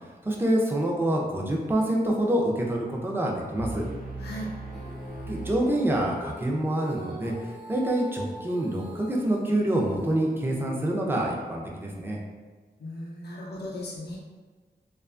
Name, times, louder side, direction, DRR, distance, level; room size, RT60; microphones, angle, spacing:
voice 1, 0.2-3.8 5.3-12.2, right 1 dB, 15° right, -2 dB, 0.4 m, -26 dB
sound 1, 3.6-6.5, right 2 dB, 60° right, 0.9 m, -39 dB
voice 2, 4.2-4.5 12.8-14.2, left 1 dB, 90° left, -3 dB, 0.5 m, -37 dB
Female singing, 4.7-11.2, right 1 dB, 90° right, 0.9 m, -43 dB
2.7 x 2.2 x 2.5 m, 1.3 s
wide cardioid pair, 105°, 16 cm